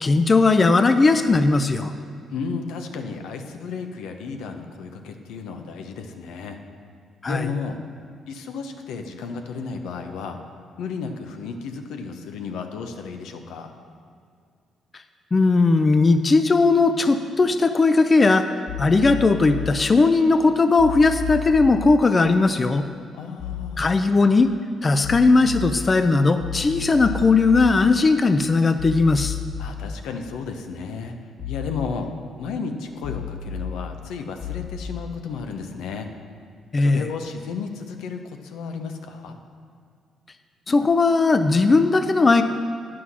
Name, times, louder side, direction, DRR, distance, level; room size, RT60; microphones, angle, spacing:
voice 1, 0.0-1.9 7.2-7.5 15.3-18.5 18.8-22.8 23.8-24.5 24.8-29.4 36.7-37.1 40.7-42.4, left 3 dB, 30° left, 9 dB, 0.4 m, -18 dB
voice 2, 2.3-6.6 7.2-7.8 8.3-10.4 10.8-13.7 23.1-24.0 29.6-31.2 31.5-32.1 32.4-36.1 36.8-39.4, left 5 dB, 90° left, 5 dB, 0.8 m, -33 dB
sound 1, 18.7-19.7 20.8-21.7 23.4-23.7 25.0-25.7 26.4-27.7 28.8-29.7 31.4-31.7 33.0-33.7 34.4-34.8, left 8 dB, 50° left, 1.5 m, -32 dB
9.6 x 6.1 x 6.1 m, 2.3 s
cardioid pair, 90°, 0 cm